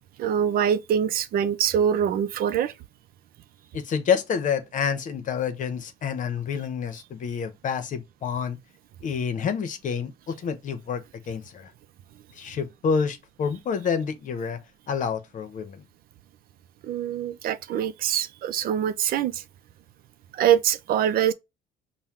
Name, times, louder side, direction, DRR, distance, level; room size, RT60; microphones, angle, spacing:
voice 1, 0.2-2.7 16.8-19.4 20.3-21.3, right 9 dB, 60° right, 0.5 m, -24 dB
voice 2, 3.7-8.6 9.0-11.7 12.4-14.6 14.9-15.8, left 6 dB, 50° left, 0.8 m, -28 dB
5.5 x 2.2 x 2.9 m
cardioid pair, 110°, 17 cm